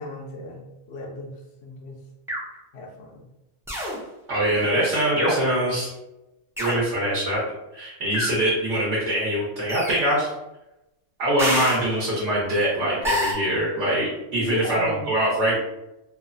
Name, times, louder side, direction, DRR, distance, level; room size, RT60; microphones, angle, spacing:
voice 1, 0.0-1.3 1.6-2.0 2.7-3.3 14.4-15.1, left 1 dB, 70° left, 0 dB, 0.8 m, -34 dB
sound 1, 2.3-2.6 3.7-4.0 5.2-5.6 6.6-6.8 8.1-8.5 9.7-10.0 11.4-11.9 13.0-13.3, equal, 5° right, 0.4 m, -26 dB
voice 2, 4.3-5.9 6.6-7.4 7.7-10.3 11.2-15.6, right 1 dB, 70° right, -7 dB, 1.2 m, -23 dB
3.1 x 2.0 x 2.5 m, 0.93 s
omnidirectional pair, 1.2 m